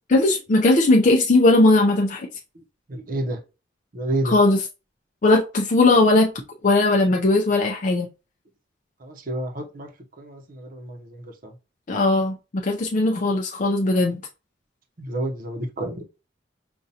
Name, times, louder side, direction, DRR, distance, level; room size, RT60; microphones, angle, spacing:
voice 1, 0.1-2.3 4.3-4.6 5.2-8.1 11.9-14.2, left 2 dB, 45° left, 0.5 m, -18 dB
voice 2, 2.9-3.4 3.9-4.4 9.0-9.9 10.2-11.5 15.0-16.0, right 1 dB, 50° right, 0.7 m, -30 dB
5.2 x 2.4 x 2.8 m
head